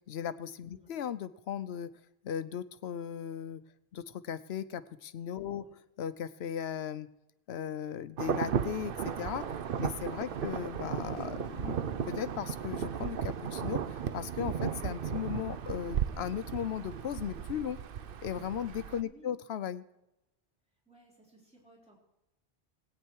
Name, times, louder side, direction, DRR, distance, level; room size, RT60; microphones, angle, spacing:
voice 1, 0.1-1.9 2.2-3.6 3.9-5.6 6.0-7.1 7.5-9.4 9.8-17.8 18.2-19.8, left 9 dB, 80° left, 13 dB, 0.9 m, -37 dB
Insect / Thunder / Rain, 8.2-19.0, right 8 dB, 65° right, 0.8 m, -35 dB
voice 2, 19.0-19.3 20.9-22.0, equal, 5° right, -4 dB, 3.8 m, -58 dB
18.5 x 9.0 x 4.6 m, 0.89 s
omnidirectional pair, 1.1 m